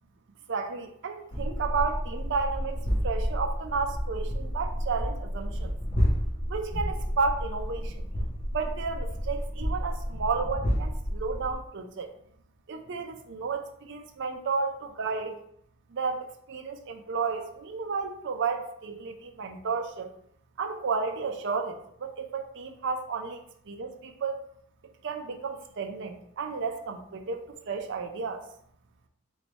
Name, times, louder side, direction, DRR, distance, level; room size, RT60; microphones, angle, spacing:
voice 1, 0.5-5.7 6.5-8.0 8.5-12.1 12.7-15.4 15.9-20.1 20.6-23.4 23.7-24.4 25.0-28.4, right 4 dB, 60° right, 5 dB, 0.5 m, -32 dB
sound 1, 1.3-11.5, equal, 30° left, 0.7 m, -30 dB
3.2 x 3.1 x 4.0 m, 0.68 s
head